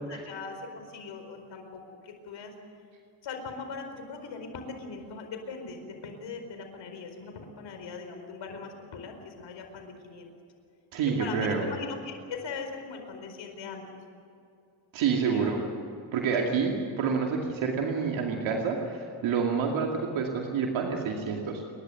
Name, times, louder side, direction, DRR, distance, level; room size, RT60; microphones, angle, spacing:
voice 1, 0.1-2.5 3.2-10.3 11.2-14.0 15.2-15.7 16.4-16.5, left 4 dB, 70° left, 5 dB, 4.7 m, -40 dB
voice 2, 10.9-11.6 14.9-15.6 16.1-21.6, right 5 dB, 80° right, 1 dB, 2.5 m, -28 dB
29.0 x 11.5 x 9.4 m, 2.6 s
cardioid pair, 85°, 46 cm